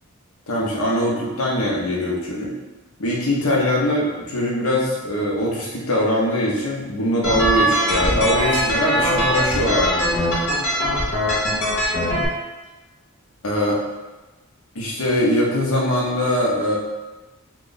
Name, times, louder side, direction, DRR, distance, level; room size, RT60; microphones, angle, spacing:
voice 1, 0.5-2.5 3.0-10.2 13.4-13.8 14.7-16.8, left 1 dB, 80° left, -3 dB, 0.8 m, -22 dB
sound 1, 7.2-12.3, equal, 60° left, 1.0 m, -21 dB
3.0 x 2.4 x 3.9 m, 1.2 s
head